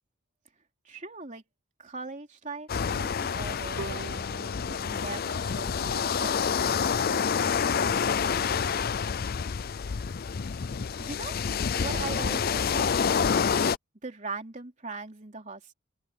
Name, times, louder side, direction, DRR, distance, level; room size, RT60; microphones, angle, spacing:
voice 1, 0.8-1.4 1.8-4.0 4.8-6.4 11.0-11.3 11.7-13.0 14.0-15.7, right 3 dB, 35° right, 3.3 m, -40 dB
sound 1, 2.7-13.8, left 6 dB, 45° left, 0.4 m, -28 dB
Bowed string instrument, 3.8-6.8, right 3 dB, 75° right, 4.0 m, -45 dB
open air
head